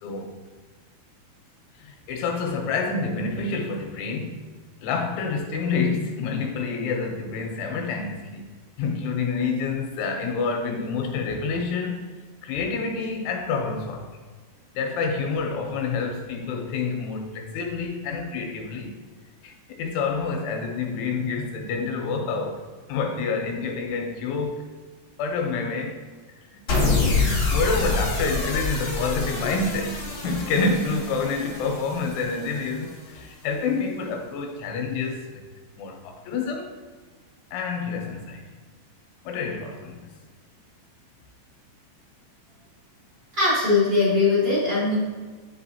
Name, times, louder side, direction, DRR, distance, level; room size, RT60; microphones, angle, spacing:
voice 1, 0.0-0.3 1.8-4.4 4.8-8.4 8.8-14.1 14.7-18.9 19.4-22.6 22.9-24.6 25.2-26.0 26.3-35.4 35.8-36.7 37.5-38.4 39.2-40.1, left 4 dB, 80° left, 2 dB, 3.0 m, -28 dB
sound 1, 26.7-33.0, left 3 dB, 60° left, 1.3 m, -26 dB
voice 2, 43.3-44.9, left 3 dB, 85° right, -11 dB, 1.0 m, -20 dB
11.0 x 3.8 x 2.7 m, 1.4 s
omnidirectional pair, 5.8 m